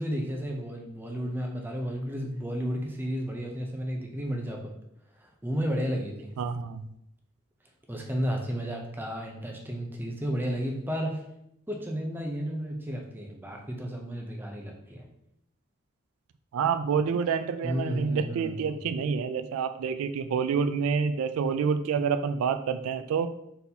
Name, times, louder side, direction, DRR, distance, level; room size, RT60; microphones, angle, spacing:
voice 1, 0.0-4.7 5.2-6.3 7.9-11.2 11.7-15.1 17.6-18.8, equal, 10° right, 1 dB, 0.5 m, -32 dB
voice 2, 6.4-6.9 16.5-23.3, right 6 dB, 80° right, 10 dB, 0.3 m, -28 dB
4.0 x 3.9 x 2.8 m, 0.78 s
head